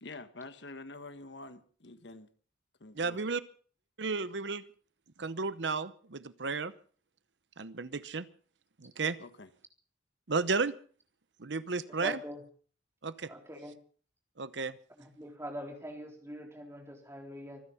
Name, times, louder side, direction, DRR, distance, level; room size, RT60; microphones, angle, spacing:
voice 1, 0.0-2.3 2.8-3.2 9.2-9.5, left 2 dB, 70° left, 1.4 m, -47 dB
voice 2, 2.9-3.4 4.0-4.6 5.2-6.7 7.6-8.3 8.8-9.2 10.3-10.8 11.4-12.2 13.0-13.3 14.4-14.8, right 4 dB, 75° right, 0.9 m, -33 dB
voice 3, 11.9-12.4 13.3-13.7 15.0-17.6, equal, 15° right, 3.9 m, -43 dB
25.5 x 10.0 x 5.6 m
head